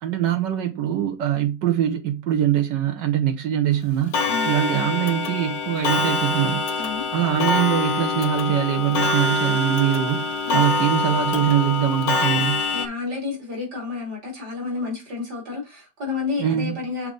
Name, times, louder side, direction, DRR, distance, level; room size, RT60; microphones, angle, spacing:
voice 1, 0.0-4.1 4.4-6.6 7.1-12.6 16.4-16.7, right 11 dB, 85° right, 1.7 m, -23 dB
Clock, 4.1-12.9, left 3 dB, 90° left, 1.6 m, -24 dB
voice 2, 12.7-17.1, left 4 dB, 65° right, 3.7 m, -30 dB
6.7 x 3.8 x 3.9 m
omnidirectional pair, 1.9 m